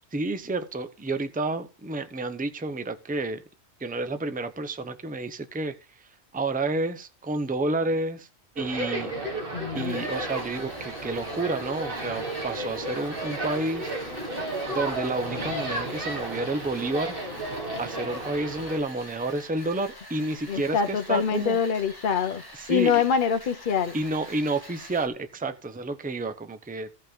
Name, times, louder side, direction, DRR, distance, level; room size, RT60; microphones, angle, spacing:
voice 1, 0.1-3.4 3.8-5.8 6.3-8.3 8.6-9.1 9.7-13.9 14.7-17.1 17.8-21.6 22.5-23.0 23.9-26.9, right 2 dB, 10° right, 0.7 m, -30 dB
sound 1, 8.6-18.8, right 1 dB, 50° right, 2.3 m, -33 dB
voice 2, 9.5-10.0 20.5-22.4 22.7-24.0, left 6 dB, 50° left, 0.9 m, -25 dB
sound 2, 9.7-25.1, left 1 dB, 20° left, 1.8 m, -46 dB
16.0 x 5.7 x 3.7 m
omnidirectional pair, 1.2 m